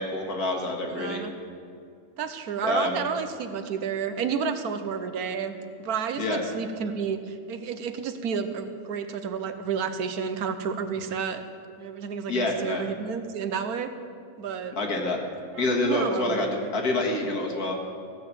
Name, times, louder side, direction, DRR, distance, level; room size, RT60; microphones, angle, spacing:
voice 1, 0.0-1.2 2.6-3.0 6.2-6.4 12.3-12.8 14.8-15.2 15.6-16.5 16.7-17.7, left 2 dB, 75° left, 1 dB, 2.2 m, -27 dB
voice 2, 0.9-1.3 2.2-11.4 11.8-13.9 14.4-14.8 15.5-16.7, right 6 dB, 75° right, 9 dB, 1.4 m, -31 dB
16.0 x 6.7 x 8.6 m, 2.3 s
omnidirectional pair, 1.6 m